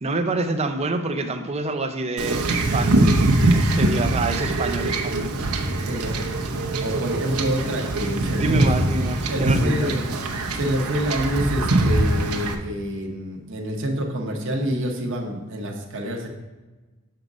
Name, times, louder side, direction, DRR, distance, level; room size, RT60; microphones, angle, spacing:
voice 1, 0.0-3.2 3.5-5.4 8.3-10.0, right 2 dB, 30° right, 7 dB, 0.6 m, -27 dB
Wind / Ocean / Boat Water vehicle, 2.2-12.5, right 2 dB, 90° right, 0.8 m, -23 dB
voice 2, 5.8-6.2 6.5-8.9 9.3-10.0 10.5-16.3, equal, 60° right, 0 dB, 1.0 m, -27 dB
6.5 x 4.0 x 6.0 m, 1.2 s
head